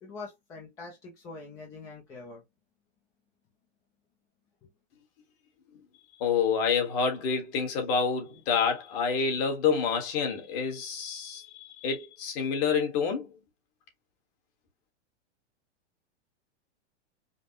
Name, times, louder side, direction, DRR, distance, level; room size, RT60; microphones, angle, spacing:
voice 1, 0.0-2.4 4.6-4.7, left 3 dB, 10° left, 0.4 m, -44 dB
voice 2, 6.2-13.3, left 6 dB, 35° left, 1.3 m, -28 dB
5.1 x 2.1 x 2.8 m
supercardioid pair, 155°, 35 cm